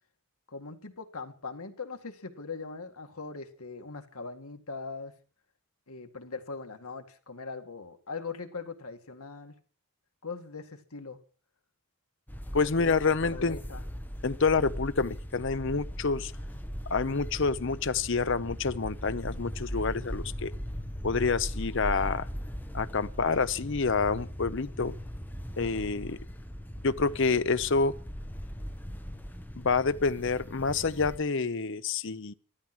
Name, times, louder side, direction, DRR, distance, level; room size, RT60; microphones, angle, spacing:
voice 1, 0.5-5.1 5.9-9.5 10.2-11.2 12.5-13.8, left 4 dB, 80° left, 2.0 m, -41 dB
sound 1, 12.3-31.2, equal, 10° left, 1.2 m, -39 dB
voice 2, 12.5-13.6 14.2-16.3 16.9-20.5 21.0-22.3 22.7-24.9 25.6-26.2 26.8-28.0 29.6-32.3, left 4 dB, 55° left, 0.8 m, -28 dB
13.5 x 13.0 x 6.2 m
head